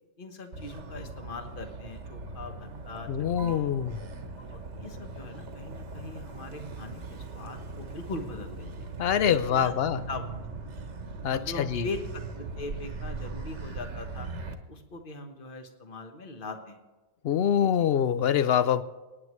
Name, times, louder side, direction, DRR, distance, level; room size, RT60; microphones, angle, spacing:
voice 1, 0.2-3.7 4.4-8.9 9.2-9.7 10.1-10.4 11.3-14.3 14.7-16.8 17.8-17.9, left 3 dB, 40° left, 5 dB, 1.4 m, -41 dB
Motor vehicle (road), 0.5-14.6, right 3 dB, 60° right, 1.4 m, -40 dB
voice 2, 3.1-4.0 9.0-10.0 11.2-11.9 17.2-18.8, left 9 dB, 60° left, 13 dB, 0.7 m, -25 dB
27.5 x 9.5 x 3.1 m, 1.2 s
omnidirectional pair, 1.4 m